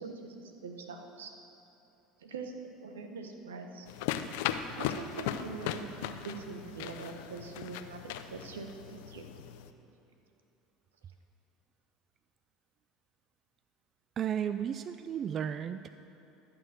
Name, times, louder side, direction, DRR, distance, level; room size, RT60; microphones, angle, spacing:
voice 1, 0.0-1.3 2.2-2.5 2.8-3.9 4.8-5.9 6.2-9.3, right 4 dB, 90° right, 5 dB, 0.9 m, -43 dB
sound 1, 3.9-9.7, left 10 dB, 75° left, 0.5 m, -38 dB
voice 2, 14.2-15.9, right 9 dB, 45° right, 12 dB, 0.3 m, -33 dB
13.0 x 6.2 x 6.4 m, 2.9 s
hypercardioid pair, 80°, 0 cm